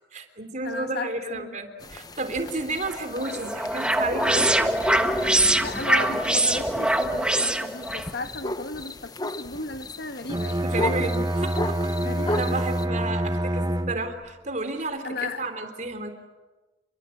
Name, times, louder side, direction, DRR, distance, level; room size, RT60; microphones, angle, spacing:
voice 1, 0.0-4.8 10.6-12.0 12.3-16.1, right 2 dB, 45° right, 3.4 m, -32 dB
voice 2, 0.6-1.6 5.6-11.3 12.0-12.6 15.0-15.4, left 3 dB, 65° left, 1.5 m, -35 dB
sound 1, 1.8-12.8, left 1 dB, 20° left, 1.0 m, -35 dB
sound 2, 2.9-8.1, right 1 dB, 5° right, 1.5 m, -23 dB
Bowed string instrument, 10.2-14.3, right 1 dB, 20° right, 1.0 m, -27 dB
28.0 x 23.5 x 8.6 m
head